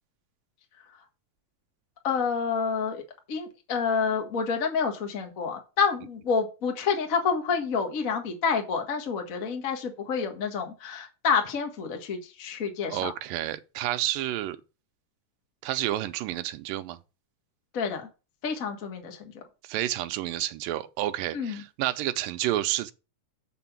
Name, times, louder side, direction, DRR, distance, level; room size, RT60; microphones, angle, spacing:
voice 1, 2.0-3.0 3.3-13.1 17.7-18.1 18.4-19.2 21.3-21.6, left 5 dB, 50° left, 0.9 m, -28 dB
voice 2, 12.9-14.6 15.6-17.0 19.7-22.9, right 14 dB, 80° right, 2.2 m, -30 dB
6.9 x 6.1 x 7.2 m
omnidirectional pair, 4.2 m